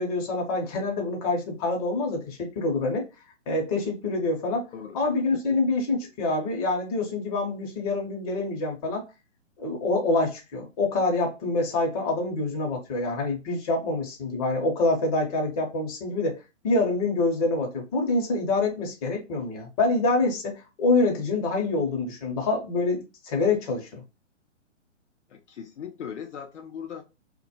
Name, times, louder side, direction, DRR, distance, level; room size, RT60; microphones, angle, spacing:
voice 1, 0.0-3.0 3.5-4.7 4.9-9.0 9.6-16.4 16.6-24.0, left 3 dB, 30° left, 0.7 m, -26 dB
voice 2, 25.3-27.0, left 8 dB, 70° left, 0.5 m, -39 dB
2.2 x 2.0 x 2.7 m
figure-of-eight pair, 125°, 37 cm